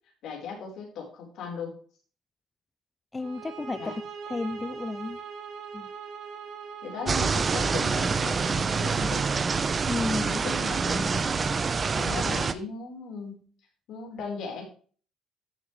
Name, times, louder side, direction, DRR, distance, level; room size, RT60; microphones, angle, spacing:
voice 1, 0.2-1.7 3.8-3.9 6.8-9.3 10.2-11.5 11.9-13.4 13.9-14.6, left 5 dB, 70° left, 4.3 m, -37 dB
voice 2, 3.1-4.0 4.3-5.2 5.7-5.9 9.9-10.4, left 3 dB, 20° left, 0.4 m, -32 dB
sound 1, 3.2-8.2, right 6 dB, 65° right, 2.5 m, -41 dB
sound 2, 7.1-12.5, right 5 dB, 35° right, 0.8 m, -26 dB
13.0 x 7.0 x 3.3 m
cardioid pair, 85°, 0 cm